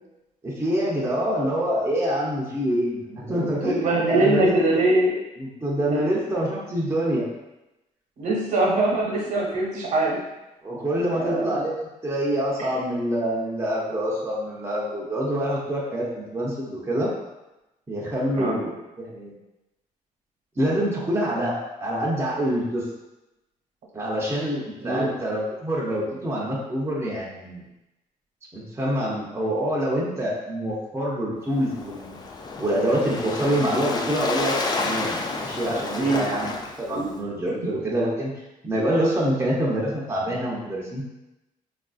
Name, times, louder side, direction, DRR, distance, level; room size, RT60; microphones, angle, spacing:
voice 1, 0.4-4.8 5.4-7.2 10.6-17.1 17.9-19.3 20.6-21.5 21.8-22.8 23.9-27.6 28.5-32.2 32.6-38.3 38.6-41.0, equal, 20° right, -5 dB, 0.6 m, -26 dB
voice 2, 3.3-5.1 5.9-6.1 8.2-10.2 11.1-11.6 12.6-12.7 18.3-18.6 24.8-25.1 35.9-36.3 36.9-37.1 37.6-37.7, right 2 dB, 65° right, -3 dB, 1.1 m, -23 dB
Waves surf, 31.5-37.2, left 3 dB, 30° left, 0.3 m, -30 dB
3.3 x 2.5 x 2.3 m, 0.97 s
cardioid pair, 95°, 14 cm